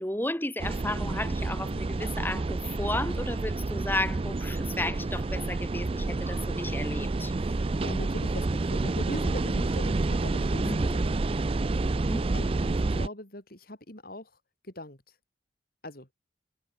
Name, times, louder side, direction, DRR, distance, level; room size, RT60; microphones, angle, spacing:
voice 1, 0.0-7.3 10.6-11.0 12.1-12.4, left 1 dB, 10° left, 2.6 m, -33 dB
sound 1, 0.6-13.1, right 3 dB, 30° right, 0.4 m, -29 dB
voice 2, 7.3-11.3 12.3-14.4 14.6-15.2 15.8-16.1, left 1 dB, 50° left, 4.5 m, -42 dB
head